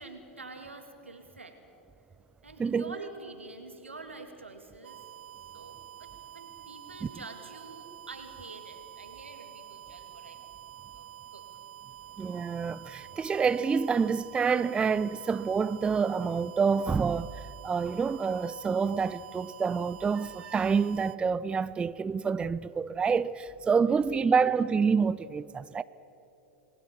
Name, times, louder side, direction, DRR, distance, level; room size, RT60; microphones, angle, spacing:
voice 1, 0.0-1.6 2.4-5.1 5.5-10.4 10.9-11.1 11.3-11.5 23.8-24.5, right 3 dB, 90° right, 2.7 m, -46 dB
voice 2, 2.6-2.9 12.2-17.3 17.6-25.8, right 5 dB, 15° right, 0.4 m, -27 dB
sound 1, 4.8-21.2, right 11 dB, 70° right, 0.7 m, -48 dB
29.0 x 20.0 x 7.1 m
figure-of-eight pair, 95°, 6 cm